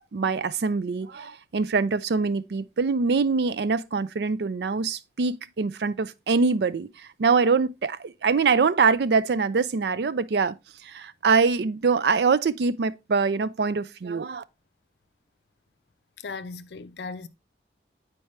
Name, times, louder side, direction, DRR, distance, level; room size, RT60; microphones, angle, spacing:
voice 1, 0.1-10.6 10.8-14.4, right 4 dB, 65° right, 0.4 m, -24 dB
voice 2, 16.2-17.3, left 4 dB, 70° left, 0.5 m, -37 dB
8.7 x 4.5 x 3.1 m
head